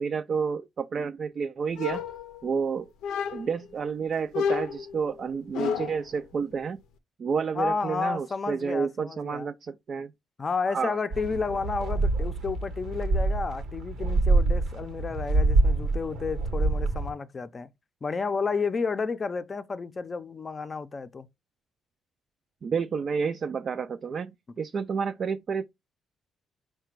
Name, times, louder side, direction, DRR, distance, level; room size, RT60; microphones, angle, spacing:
voice 1, 0.0-2.0 2.4-2.9 3.3-6.8 7.2-10.1 10.7-11.0 22.6-24.3 24.6-25.7, right 6 dB, 50° right, 0.3 m, -30 dB
sound 1, 1.8-2.6 3.0-3.7 4.3-6.1, left 7 dB, 90° left, 0.5 m, -31 dB
voice 2, 7.5-9.5 10.4-17.7 18.0-21.3, left 4 dB, 35° left, 0.5 m, -31 dB
sound 2, 11.1-17.1, right 2 dB, 80° right, 0.9 m, -26 dB
4.8 x 2.2 x 4.5 m
cardioid pair, 90°, 0 cm